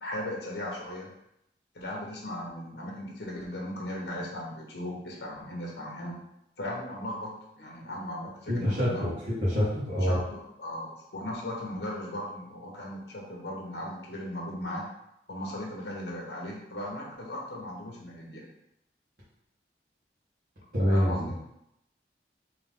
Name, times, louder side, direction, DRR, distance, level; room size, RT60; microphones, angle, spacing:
voice 1, 0.0-1.1 1.7-6.1 6.6-9.2 10.0-14.9 15.3-18.4 20.9-21.4, left 1 dB, 80° left, -2 dB, 1.1 m, -37 dB
voice 2, 8.5-9.1 9.4-10.2 20.7-21.3, equal, 60° right, -10 dB, 1.4 m, -25 dB
3.8 x 3.0 x 3.5 m, 0.82 s
head